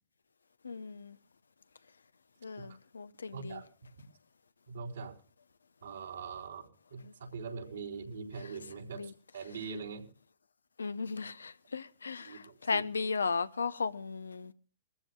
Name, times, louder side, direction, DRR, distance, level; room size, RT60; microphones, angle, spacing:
voice 1, 0.6-1.2 2.4-3.6 7.0-7.1 9.0-9.1 10.8-14.5, left 4 dB, 90° left, 0.8 m, -36 dB
voice 2, 3.3-3.7 4.7-5.1 5.8-10.1 12.2-12.8, right 5 dB, 80° right, 4.1 m, -42 dB
23.0 x 14.5 x 2.3 m
hypercardioid pair, 115°, 0 cm